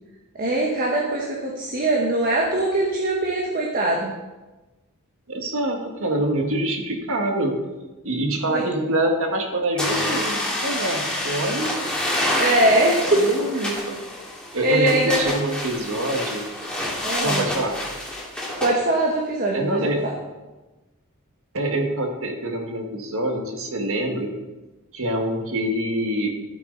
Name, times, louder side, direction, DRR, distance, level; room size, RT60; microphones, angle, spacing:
voice 1, 0.4-4.1 8.5-8.6 12.4-13.2 13.5-13.7 14.6-15.3 17.0-17.4 18.6-20.1, right 1 dB, 40° right, -1 dB, 1.4 m, -22 dB
voice 2, 5.3-7.5 8.0-11.7 13.0-14.0 14.5-16.5 17.2-17.7 19.5-20.1 21.5-24.3 24.9-26.3, right 1 dB, 65° right, 3 dB, 1.7 m, -25 dB
sound 1, 9.8-18.7, left 1 dB, 5° left, 2.4 m, -27 dB
13.5 x 8.2 x 4.0 m, 1.1 s
head